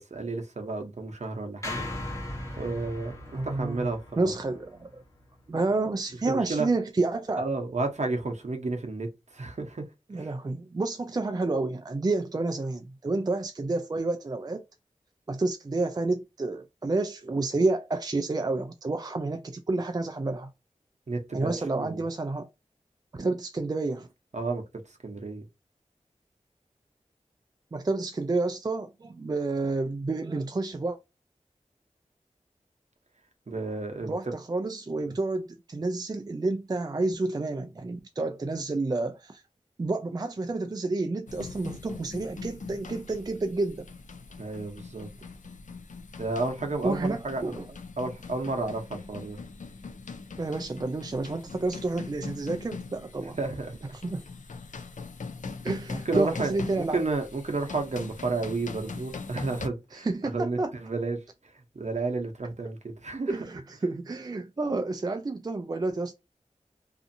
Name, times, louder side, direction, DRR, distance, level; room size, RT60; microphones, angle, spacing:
voice 1, 0.0-2.2 2.6-4.3 6.3-6.7 7.4-9.8 10.1-10.3 21.1-22.0 24.3-25.4 33.5-34.1 44.4-45.1 46.2-47.5 48.0-49.4 53.4-53.8 55.9-60.1 60.3-63.3, right 3 dB, 65° right, 0.8 m, -32 dB
sound 1, 1.6-5.9, left 1 dB, 25° left, 1.0 m, -39 dB
voice 2, 3.3-3.9 4.2-5.0 5.5-7.5 10.1-14.6 15.3-20.5 21.3-22.5 23.1-24.1 27.7-31.0 34.1-39.4 39.8-43.9 46.8-47.7 50.4-53.4 54.0-54.2 55.6-57.0 59.9-60.7 63.3-66.1, right 3 dB, 30° right, 0.3 m, -29 dB
sound 2, 41.3-59.7, left 4 dB, 75° left, 0.4 m, -41 dB
2.6 x 2.4 x 2.6 m
wide cardioid pair, 45°, 13 cm